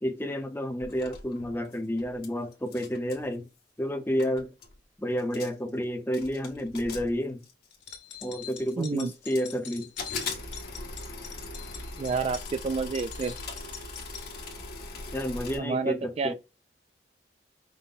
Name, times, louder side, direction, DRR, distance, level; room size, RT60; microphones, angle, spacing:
voice 1, 0.0-3.5 3.8-4.5 5.0-7.4 8.2-9.9 15.1-16.3, equal, 15° left, 0.8 m, -30 dB
sound 1, 0.8-2.3 2.5-3.3 3.9-4.0 4.2-4.7 5.2-5.7 6.1-7.9 8.5-9.6 10.0-15.6, left 3 dB, 60° left, 1.4 m, -40 dB
sound 2, 7.7-14.3, left 8 dB, 90° left, 1.4 m, -44 dB
voice 2, 8.8-9.1 12.0-13.3 15.6-16.3, right 4 dB, 35° right, 0.3 m, -29 dB
5.4 x 2.2 x 3.9 m
head